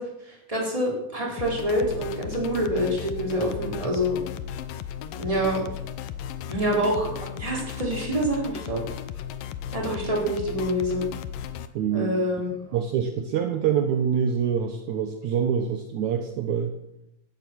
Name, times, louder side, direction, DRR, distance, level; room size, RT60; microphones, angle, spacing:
voice 1, 0.0-4.2 5.1-5.6 6.5-8.8 9.7-11.0 11.9-12.5, equal, 10° right, -2 dB, 4.3 m, -26 dB
sound 1, 1.4-11.7, left 9 dB, 80° left, 2.6 m, -35 dB
voice 2, 11.7-12.1 12.7-16.7, right 7 dB, 65° right, 5 dB, 2.4 m, -25 dB
16.5 x 14.0 x 6.3 m, 0.79 s
omnidirectional pair, 3.9 m